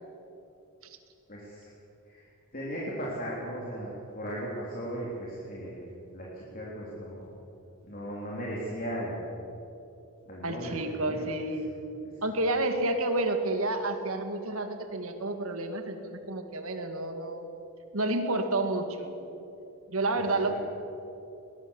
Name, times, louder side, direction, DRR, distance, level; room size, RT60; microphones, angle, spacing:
voice 1, 1.3-1.7 2.0-2.3 2.5-5.9 6.1-7.2 7.8-9.2 10.2-11.2 12.1-12.2 20.3-20.5, equal, 40° left, -5 dB, 3.6 m, -37 dB
voice 2, 10.4-11.7 12.2-17.5 17.9-19.1 19.9-20.5, right 2 dB, 70° right, 6 dB, 2.2 m, -30 dB
22.0 x 20.0 x 7.3 m, 2.9 s
head